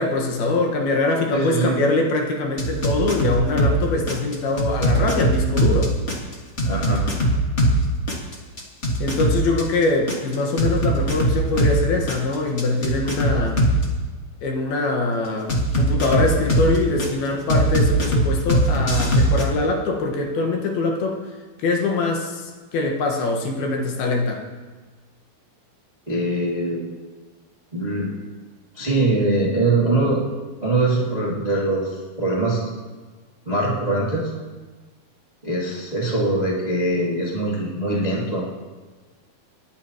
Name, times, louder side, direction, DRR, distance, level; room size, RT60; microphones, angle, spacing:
voice 1, 0.0-6.0 9.0-13.6 14.4-21.2 21.6-24.4, left 2 dB, 80° left, 1 dB, 3.3 m, -23 dB
voice 2, 1.3-1.8 6.6-7.0 26.1-26.8 27.7-28.1 28.7-30.2 30.6-32.6 33.4-34.3 35.4-38.4, right 2 dB, 20° right, -5 dB, 0.9 m, -22 dB
sound 1, 2.6-3.8 4.1-7.8 8.1-11.8 12.1-13.8 15.5-17.1 17.5-19.4, equal, 45° left, 0.8 m, -20 dB
27.0 x 10.5 x 3.0 m, 1.4 s
omnidirectional pair, 4.4 m